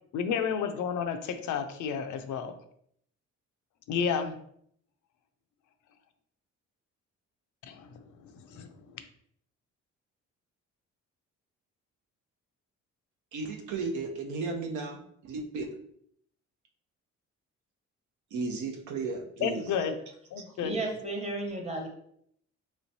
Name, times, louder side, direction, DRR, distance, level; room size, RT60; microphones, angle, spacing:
voice 1, 0.1-2.5 3.9-4.4 7.6-8.0 8.4-9.0 19.4-19.9 20.3-20.7, left 7 dB, 80° left, 8 dB, 0.5 m, -31 dB
voice 2, 13.3-15.7 18.3-19.6, right 4 dB, 80° right, 2 dB, 0.7 m, -34 dB
voice 3, 20.5-21.9, right 2 dB, 20° right, 1 dB, 1.0 m, -34 dB
3.3 x 3.1 x 2.7 m, 0.67 s
cardioid pair, 90°, 30 cm